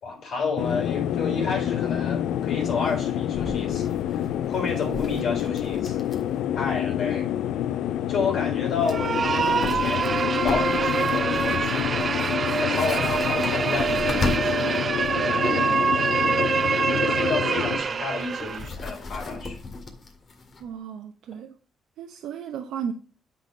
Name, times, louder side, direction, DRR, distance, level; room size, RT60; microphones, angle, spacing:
voice 1, 0.0-4.2 4.5-6.0 6.5-7.3 8.1-10.1 10.4-12.1 12.6-14.9 15.2-16.6 17.0-19.6, left 4 dB, 65° left, 3.5 m, -31 dB
sound 1, 0.6-17.8, left 11 dB, 85° left, 0.3 m, -28 dB
sound 2, 1.6-1.7 1.8-1.9 2.3-2.4 2.9-6.4 6.7-6.8 8.4-8.5 8.8-15.2 17.0-20.7, left 3 dB, 45° left, 1.9 m, -36 dB
sound 3, 8.8-18.7, right 5 dB, 45° right, 0.3 m, -25 dB
voice 2, 20.6-21.5 22.0-22.9, right 8 dB, 80° right, 0.8 m, -34 dB
8.4 x 4.2 x 6.0 m
cardioid pair, 90°, 0 cm